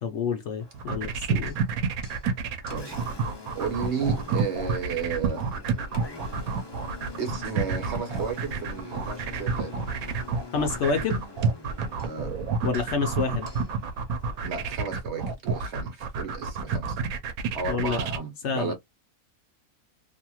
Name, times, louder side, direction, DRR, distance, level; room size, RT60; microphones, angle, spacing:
voice 1, 0.0-1.5 10.5-11.3 12.6-13.5 17.7-18.0 18.4-18.7, left 5 dB, 65° left, 0.8 m, -28 dB
Engine, 0.6-14.6, left 3 dB, 30° left, 0.5 m, -45 dB
sound 1, 0.7-18.2, right 5 dB, 80° right, 1.1 m, -29 dB
voice 2, 3.5-5.4 7.2-9.8 12.0-12.4 14.4-17.1 17.5-18.7, right 5 dB, 60° right, 1.0 m, -33 dB
2.9 x 2.7 x 2.3 m
omnidirectional pair, 1.5 m